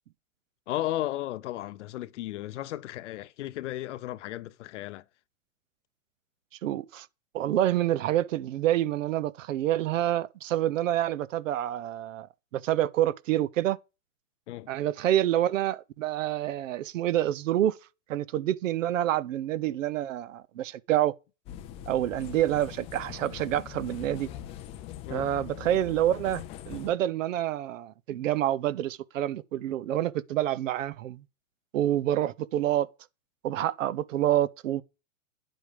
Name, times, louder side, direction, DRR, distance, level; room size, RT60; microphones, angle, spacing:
voice 1, 0.7-5.0 14.5-14.7 25.1-25.3, left 14 dB, 60° left, 0.8 m, -34 dB
voice 2, 6.6-7.1 7.3-12.3 12.5-13.8 14.7-17.8 18.1-21.1 21.9-24.3 25.1-31.2 31.7-32.9 33.4-34.8, right 12 dB, 65° right, 1.0 m, -27 dB
sound 1, 21.5-26.9, left 11 dB, 15° left, 0.5 m, -42 dB
10.0 x 7.9 x 5.2 m
supercardioid pair, 155°, 41 cm